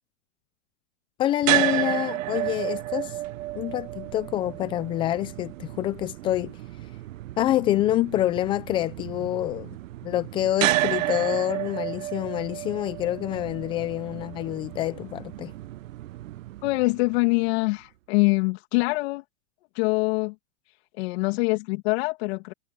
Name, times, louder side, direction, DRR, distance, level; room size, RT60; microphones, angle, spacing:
voice 1, 1.2-3.2 3.5-6.6 7.4-9.8 10.0-15.5, left 13 dB, 15° left, 0.4 m, -27 dB
sound 1, 1.4-17.6, right 15 dB, 65° right, 0.8 m, -31 dB
voice 2, 16.6-19.2 19.7-20.3 21.0-22.5, left 27 dB, 45° left, 2.5 m, -24 dB
hypercardioid pair, 135°, 43 cm